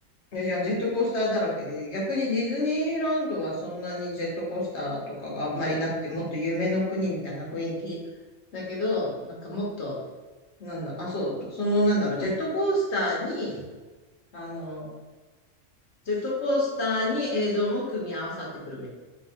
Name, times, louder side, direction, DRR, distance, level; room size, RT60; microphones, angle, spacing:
voice 1, 0.3-8.0 8.5-10.0 10.6-13.6 14.3-14.9 16.0-18.9, left 1 dB, 60° left, -4 dB, 1.4 m, -28 dB
3.4 x 3.1 x 4.5 m, 1.3 s
omnidirectional pair, 1.3 m